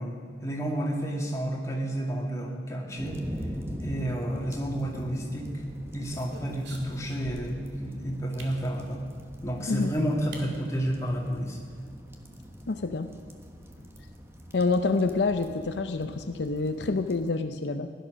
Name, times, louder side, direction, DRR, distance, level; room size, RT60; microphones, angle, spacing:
voice 1, 0.0-3.2 3.8-5.5 5.9-9.0 9.4-11.6, equal, 15° left, -2 dB, 2.4 m, -31 dB
sound 1, 3.0-17.3, equal, 15° right, 1.2 m, -43 dB
sound 2, 5.7-7.7 8.4-8.6 9.7-9.8 10.3-10.5 10.8-10.9 11.2-11.6, right 2 dB, 70° right, 2.3 m, -46 dB
voice 2, 12.7-13.1 14.5-17.9, left 3 dB, 70° left, 8 dB, 0.6 m, -27 dB
16.0 x 11.5 x 6.3 m, 2.1 s
head